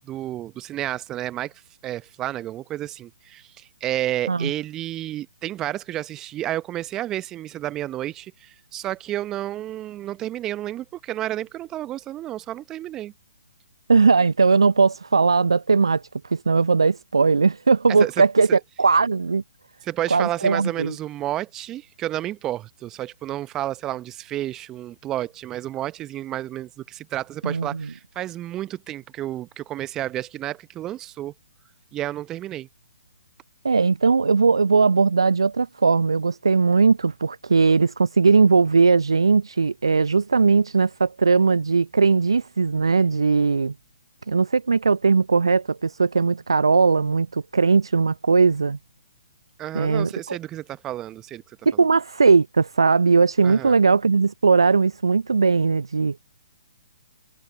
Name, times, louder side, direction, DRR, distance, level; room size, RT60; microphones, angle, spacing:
voice 1, 0.0-1.5 1.8-13.1 18.0-18.1 18.5-18.6 19.8-31.3 31.9-32.7 49.6-51.4 51.7-51.8 53.4-53.8, right 13 dB, 20° right, 0.9 m, -31 dB
voice 2, 13.9-19.4 20.1-20.9 27.4-27.9 33.6-43.7 44.3-48.8 49.7-50.4 51.7-56.2, right 4 dB, 70° right, 0.5 m, -19 dB
figure-of-eight pair, 130°, 3 cm